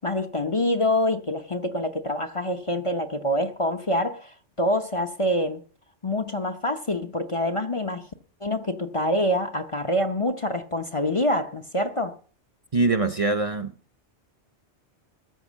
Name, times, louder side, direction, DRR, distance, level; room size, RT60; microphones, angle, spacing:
voice 1, 0.0-5.6 6.0-8.1 8.4-12.1, left 1 dB, 30° left, 0.9 m, -26 dB
voice 2, 12.7-13.7, right 3 dB, 35° right, 0.8 m, -23 dB
14.0 x 8.6 x 7.4 m
omnidirectional pair, 1.2 m